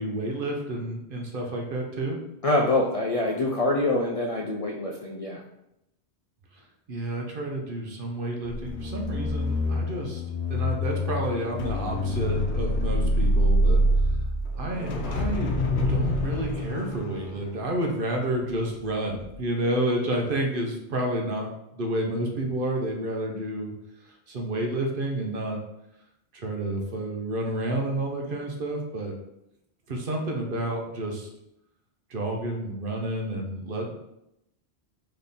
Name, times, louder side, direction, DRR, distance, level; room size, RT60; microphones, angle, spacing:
voice 1, 0.0-2.2 6.5-6.6 6.9-10.2 10.5-14.2 14.6-23.7 24.0-25.6 26.3-29.1 29.9-31.3 32.1-33.9, right 1 dB, 55° right, 1 dB, 0.9 m, -30 dB
voice 2, 2.4-5.4, left 2 dB, 50° left, -1 dB, 0.4 m, -25 dB
sound 1, 8.4-18.8 19.1-19.4, equal, 80° left, 0.9 m, -26 dB
3.5 x 3.2 x 4.1 m, 0.83 s
omnidirectional pair, 1.1 m